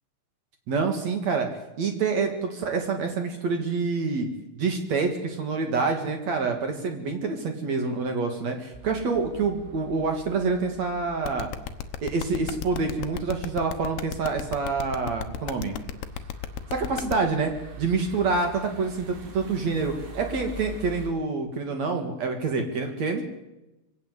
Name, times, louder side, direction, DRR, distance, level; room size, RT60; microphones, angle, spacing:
voice 1, 0.7-1.5 1.8-4.3 4.6-11.5 12.0-15.7 16.7-17.5 17.8-23.2, right 4 dB, 55° right, 4 dB, 2.1 m, -27 dB
sound 1, 8.7-21.1, equal, 85° right, 6.0 m, -44 dB
sound 2, 11.2-17.1, left 13 dB, 75° left, 2.6 m, -33 dB
23.5 x 17.0 x 8.2 m, 0.97 s
omnidirectional pair, 5.9 m